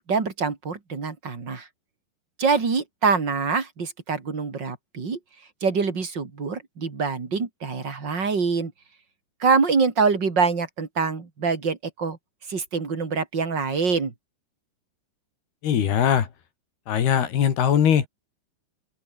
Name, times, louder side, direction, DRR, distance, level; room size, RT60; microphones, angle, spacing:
voice 1, 0.1-1.7 2.4-5.2 5.6-8.7 9.4-12.2 12.5-14.1, right 5 dB, 30° right, 3.1 m, -25 dB
voice 2, 15.6-16.3 16.9-18.1, left 9 dB, 65° left, 4.5 m, -20 dB
open air
omnidirectional pair, 5.0 m